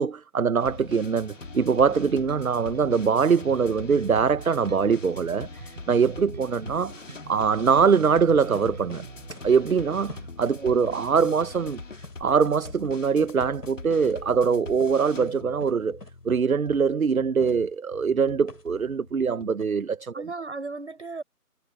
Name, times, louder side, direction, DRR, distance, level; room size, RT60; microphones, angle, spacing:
voice 1, 0.0-6.9 7.3-9.0 9.3-11.8 12.2-16.0 16.2-20.1, right 6 dB, 65° right, 0.8 m, -23 dB
sound 1, 0.6-19.5, left 3 dB, 50° left, 1.8 m, -43 dB
sound 2, 1.8-11.4, right 5 dB, 30° right, 4.7 m, -44 dB
sound 3, 8.5-9.0 9.3-9.4 9.7-9.8 10.1-10.6 10.9-11.0 11.2-11.4 11.7-11.8 12.0-12.2 12.4-12.6 12.8-13.0 13.2-13.3 13.6-13.7 14.0-14.2 14.4-14.5 14.8-14.9 15.2-15.3 15.6-15.7 16.0-16.1 17.4-17.5 18.5-18.6 19.6-19.7, left 2 dB, 80° left, 2.7 m, -44 dB
voice 2, 10.5-11.0 20.1-21.2, right 3 dB, 45° right, 5.2 m, -36 dB
figure-of-eight pair, 170°, 47 cm